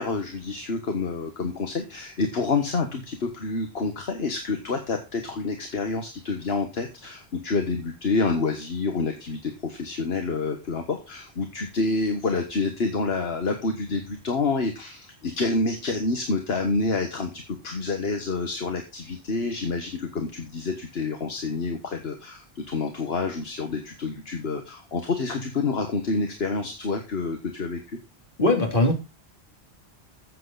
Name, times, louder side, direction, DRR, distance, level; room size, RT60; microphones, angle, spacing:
voice 1, 0.0-28.0, left 3 dB, 70° left, 5 dB, 1.7 m, -28 dB
voice 2, 28.4-28.9, left 2 dB, 55° left, 2 dB, 3.5 m, -20 dB
14.0 x 7.6 x 4.1 m, 0.27 s
omnidirectional pair, 1.1 m